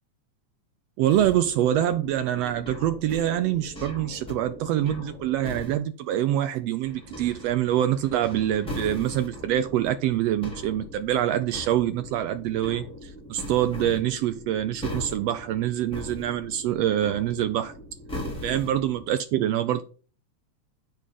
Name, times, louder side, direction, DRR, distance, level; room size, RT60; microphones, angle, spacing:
voice 1, 1.0-17.7 18.4-19.8, right 12 dB, 80° right, 1.5 m, -25 dB
sound 1, 1.1-5.7 6.8-19.1, left 1 dB, ahead, 3.0 m, -40 dB
7.8 x 4.9 x 5.6 m
omnidirectional pair, 3.5 m